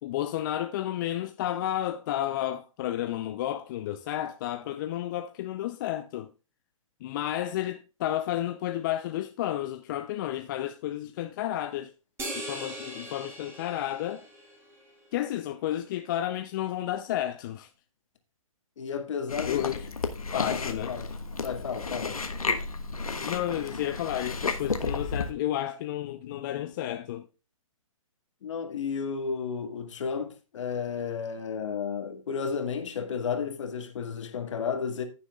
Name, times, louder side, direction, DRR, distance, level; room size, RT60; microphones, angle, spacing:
voice 1, 0.0-6.3 7.0-11.9 12.3-14.2 15.1-17.7 19.5-19.8 20.3-21.0 23.2-27.3, left 12 dB, 35° left, 0.6 m, -31 dB
sound 1, 12.2-14.9, right 1 dB, 15° right, 3.1 m, -40 dB
voice 2, 18.8-19.6 20.3-21.1 21.4-22.2 28.4-35.0, left 6 dB, 60° left, 1.9 m, -32 dB
Chewing mastication, 19.3-25.3, left 4 dB, 90° left, 1.3 m, -32 dB
15.0 x 6.9 x 2.4 m
hypercardioid pair, 135°, 18 cm